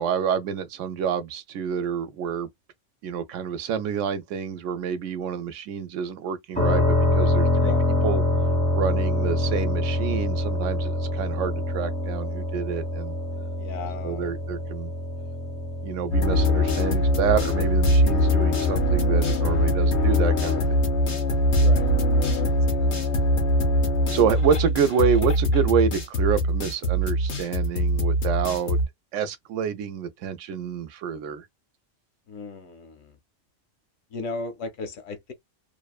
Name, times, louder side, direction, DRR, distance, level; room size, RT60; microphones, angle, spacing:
voice 1, 0.0-2.5 3.0-7.7 8.0-8.2 8.7-13.2 14.0-14.9 15.8-20.6 24.1-28.8 29.1-31.5, right 7 dB, 90° right, 0.9 m, -28 dB
sound 1, 6.6-20.2, left 2 dB, 5° left, 0.9 m, -26 dB
voice 2, 13.6-14.3 21.6-22.0 22.3-23.0 23.6-23.9 32.3-33.2 34.1-35.3, left 3 dB, 90° left, 1.1 m, -37 dB
sound 2, 16.1-28.9, left 1 dB, 65° left, 1.1 m, -22 dB
2.7 x 2.1 x 2.3 m
omnidirectional pair, 1.2 m